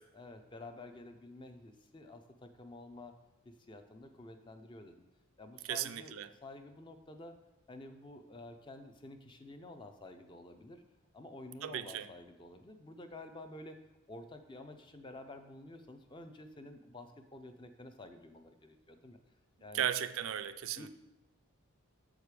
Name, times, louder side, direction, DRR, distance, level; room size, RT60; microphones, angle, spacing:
voice 1, 0.1-3.2 3.5-5.0 5.4-6.1 6.4-7.4 7.7-10.8 11.1-19.2 19.6-19.9 20.8-20.9, left 2 dB, 20° left, 7 dB, 0.5 m, -50 dB
voice 2, 5.7-6.3 11.6-12.1 19.7-20.9, right 9 dB, 75° right, 11 dB, 0.4 m, -36 dB
7.3 x 4.9 x 4.8 m, 1.0 s
head